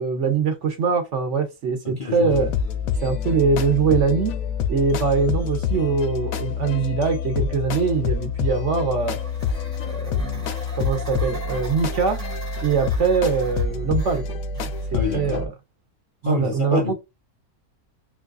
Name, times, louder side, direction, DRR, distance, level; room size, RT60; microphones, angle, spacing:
voice 1, 0.0-2.5 3.0-4.3 4.7-9.2 9.8-10.5 10.7-12.2 12.6-14.4 14.9-15.5 16.2-16.9, right 5 dB, 60° right, 1.0 m, -22 dB
voice 2, 1.8-2.5 14.9-15.5 16.2-16.9, left 6 dB, 45° left, 0.7 m, -27 dB
sound 1, 2.3-15.5, left 6 dB, 75° left, 1.0 m, -27 dB
sound 2, 8.9-15.1, right 3 dB, 5° left, 0.7 m, -42 dB
3.9 x 2.3 x 2.4 m
omnidirectional pair, 1.6 m